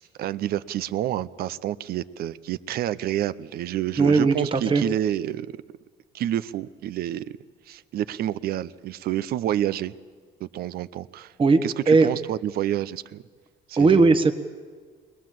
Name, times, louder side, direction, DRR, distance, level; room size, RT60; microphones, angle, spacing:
voice 1, 0.0-5.6 6.1-7.3 7.7-9.9 10.4-11.3 11.6-13.2 13.7-14.2, right 12 dB, 65° right, 16 dB, 0.7 m, -29 dB
voice 2, 4.0-4.8 11.4-11.6 11.9-12.1 13.8-14.3, right 3 dB, 30° right, 8 dB, 1.3 m, -18 dB
21.5 x 19.5 x 7.7 m, 1.5 s
cardioid pair, 110°, 17 cm